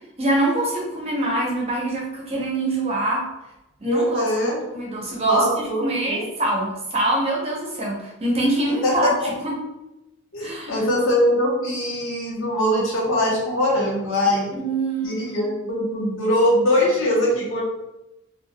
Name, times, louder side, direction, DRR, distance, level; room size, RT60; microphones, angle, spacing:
voice 1, 0.2-3.3 3.8-9.6 10.4-10.8 14.6-15.3, right 1 dB, 30° right, -3 dB, 0.7 m, -24 dB
voice 2, 3.8-4.6 5.2-6.2 8.8-9.3 10.3-14.5 15.0-17.6, left 1 dB, 80° left, -4 dB, 0.9 m, -22 dB
3.4 x 2.4 x 2.2 m, 0.96 s
head